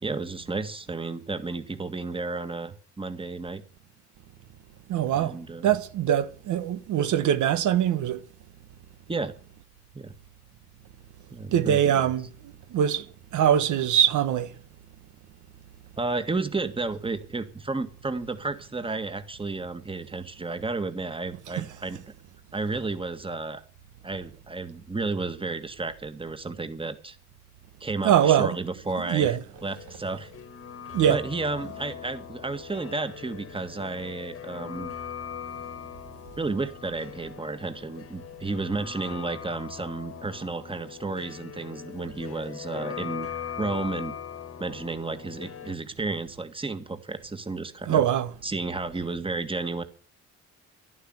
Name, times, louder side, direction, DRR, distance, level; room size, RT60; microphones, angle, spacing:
voice 1, 0.0-3.6 5.1-5.7 9.1-9.3 9.9-10.1 11.3-12.1 16.0-22.0 22.5-23.6 24.0-27.2 27.8-30.3 31.1-34.9 36.4-43.3 43.6-44.1 44.6-48.0 48.4-49.8, right 3 dB, 15° right, 1.8 m, -32 dB
voice 2, 4.9-5.3 5.6-8.2 11.5-12.3 12.7-13.0 13.3-14.5 28.0-28.5 29.1-29.4 30.9-31.2 47.9-48.3, right 10 dB, 80° right, 1.3 m, -22 dB
sound 1, 29.5-45.8, left 8 dB, 50° left, 1.6 m, -40 dB
11.5 x 11.5 x 8.0 m
cardioid pair, 90°, 30 cm